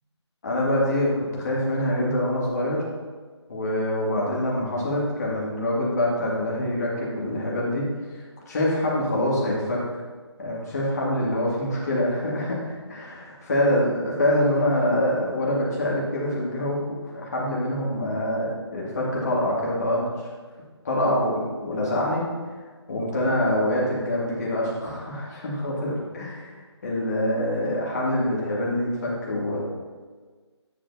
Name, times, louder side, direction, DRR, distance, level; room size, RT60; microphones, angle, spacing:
voice 1, 0.4-2.9 3.5-9.8 10.4-20.0 20.8-22.3 22.9-26.5 26.8-29.6, left 1 dB, 35° left, -5 dB, 2.2 m, -25 dB
9.6 x 7.4 x 2.7 m, 1.5 s
figure-of-eight pair, 170°, 15 cm